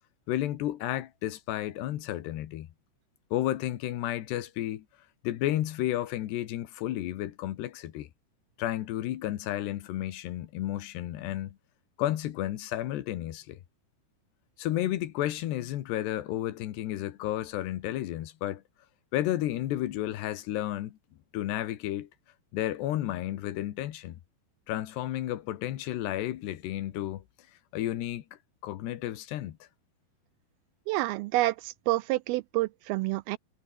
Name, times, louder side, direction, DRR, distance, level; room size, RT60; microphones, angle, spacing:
voice 1, 0.3-2.7 3.3-4.9 5.2-8.1 8.6-11.6 12.0-13.6 14.6-18.6 19.1-21.0 21.3-22.1 22.5-24.2 24.7-27.2 27.7-28.2 28.6-29.6, left 13 dB, 85° left, 3.6 m, -32 dB
voice 2, 30.9-33.4, right 19 dB, 80° right, 2.2 m, -28 dB
omnidirectional pair, 4.7 m